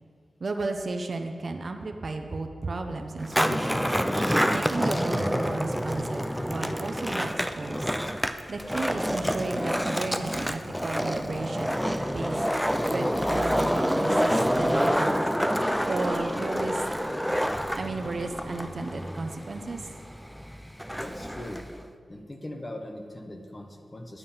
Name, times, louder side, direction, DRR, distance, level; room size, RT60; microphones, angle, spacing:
voice 1, 0.4-4.0 4.5-7.9 8.5-12.4 12.9-15.2 15.8-16.8 17.8-19.8, right 3 dB, 50° right, 5 dB, 0.7 m, -34 dB
Skateboard, 3.2-21.8, equal, ahead, 0.4 m, -28 dB
voice 2, 21.0-21.6 22.1-24.2, left 1 dB, 25° left, 4 dB, 0.9 m, -40 dB
9.4 x 7.3 x 5.6 m, 2.1 s
wide cardioid pair, 115°, 0 cm